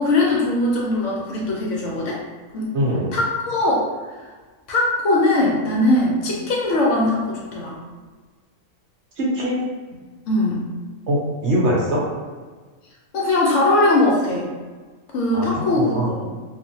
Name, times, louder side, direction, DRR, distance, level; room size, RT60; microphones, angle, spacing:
voice 1, 0.0-2.2 2.5-2.7 3.1-3.8 4.7-7.8 10.3-10.6 13.1-14.5 15.1-16.3, left 2 dB, 65° left, -3 dB, 0.9 m, -20 dB
voice 2, 2.7-3.1 9.2-9.6 11.1-12.0 15.3-16.1, right 1 dB, 60° right, -5 dB, 0.9 m, -22 dB
2.7 x 2.4 x 2.6 m, 1.4 s
omnidirectional pair, 1.5 m